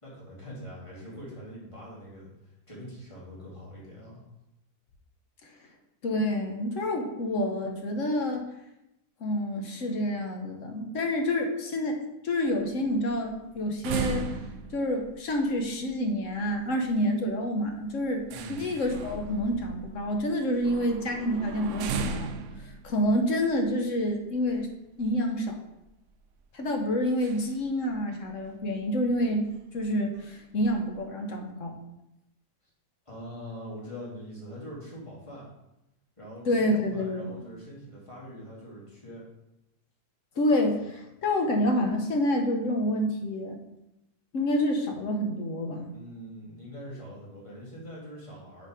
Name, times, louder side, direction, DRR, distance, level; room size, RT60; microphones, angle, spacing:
voice 1, 0.0-4.2 18.3-18.7 33.1-35.4 36.2-39.2 45.9-48.7, equal, 20° left, -6 dB, 2.3 m, -43 dB
voice 2, 6.0-8.5 9.2-14.3 14.7-18.2 18.5-22.3 22.6-24.7 25.0-25.6 26.5-29.5 29.7-31.8 36.4-37.4 40.4-43.6 44.3-45.9, left 1 dB, 55° left, 3 dB, 1.1 m, -28 dB
sound 1, 12.4-25.0 25.5-25.6 25.8-26.1 27.1-27.7 27.9-28.0 28.4-28.5 29.1-29.2 29.5-29.8 30.1-30.9, right 4 dB, 70° right, 0.7 m, -37 dB
6.5 x 4.1 x 4.8 m, 0.87 s
omnidirectional pair, 1.7 m